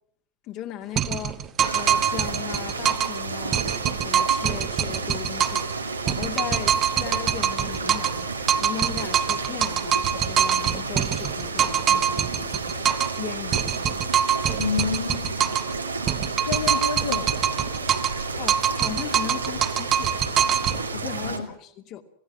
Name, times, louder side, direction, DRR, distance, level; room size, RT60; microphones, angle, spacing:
voice 1, 0.4-1.4 1.7-3.7 4.0-8.3 8.6-12.9 13.2-13.8 18.4-20.2 20.9-22.0, left 11 dB, 40° left, 2.5 m, -37 dB
sound 1, 1.0-3.2 3.5-5.7 6.1-8.2 8.5-13.2 13.5-15.7 16.1-18.2 18.5-20.8, right 9 dB, 30° right, 1.5 m, -24 dB
sound 2, 1.6-21.4, right 4 dB, 80° right, 2.5 m, -31 dB
voice 2, 14.6-15.5 16.5-17.4 21.2-21.5, left 5 dB, 70° left, 1.5 m, -28 dB
27.0 x 17.5 x 7.5 m
figure-of-eight pair, 90°, 0 cm